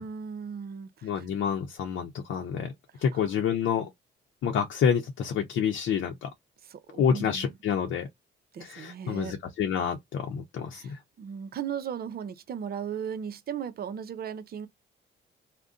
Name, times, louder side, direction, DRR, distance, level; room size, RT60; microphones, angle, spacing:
voice 1, 0.0-1.3 3.1-3.2 6.7-7.5 8.5-9.4 10.7-14.7, right 8 dB, 50° right, 0.6 m, -37 dB
voice 2, 1.0-2.7 3.0-3.9 4.4-6.3 6.9-8.1 8.6-11.0, left 7 dB, 75° left, 0.7 m, -28 dB
2.5 x 2.2 x 3.6 m
cardioid pair, 90°, 20 cm